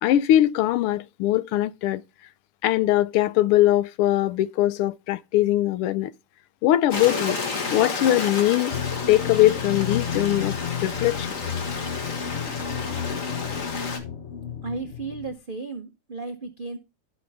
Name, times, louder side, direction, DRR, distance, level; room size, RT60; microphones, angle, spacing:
voice 1, 0.0-2.0 2.6-6.1 6.6-7.4 7.7-8.8 9.1-10.5 10.8-11.3, left 14 dB, 85° left, 1.6 m, -21 dB
Stream, 6.9-14.0, left 4 dB, 40° left, 1.7 m, -31 dB
sound 1, 8.7-15.3, left 8 dB, 60° left, 0.7 m, -32 dB
voice 2, 14.6-16.8, right 3 dB, 65° right, 0.5 m, -34 dB
16.0 x 5.3 x 3.4 m
omnidirectional pair, 2.4 m